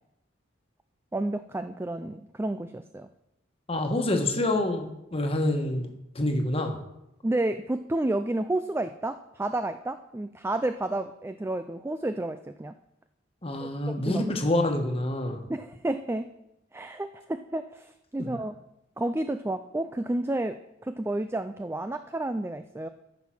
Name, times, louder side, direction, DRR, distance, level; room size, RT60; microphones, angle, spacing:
voice 1, 1.1-3.1 7.2-12.7 13.6-14.2 15.5-16.3 16.7-18.6 19.0-22.9, right 2 dB, 10° right, 9 dB, 0.3 m, -31 dB
voice 2, 3.7-6.7 13.4-15.4, left 1 dB, 30° left, 4 dB, 1.4 m, -27 dB
14.0 x 5.7 x 5.9 m, 0.85 s
head